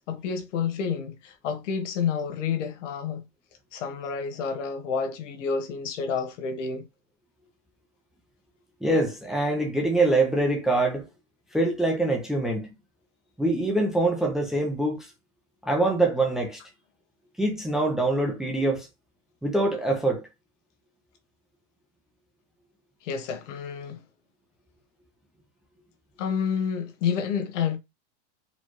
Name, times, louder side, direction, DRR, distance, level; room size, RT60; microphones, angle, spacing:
voice 1, 0.1-3.2 3.7-6.8 23.0-24.0 26.2-27.8, left 6 dB, 85° left, 1.1 m, -29 dB
voice 2, 8.8-11.0 11.5-12.7 13.4-15.0 15.6-16.6 17.4-18.9 19.4-20.2, right 2 dB, ahead, 0.4 m, -24 dB
4.2 x 3.0 x 3.0 m
supercardioid pair, 165°, 36 cm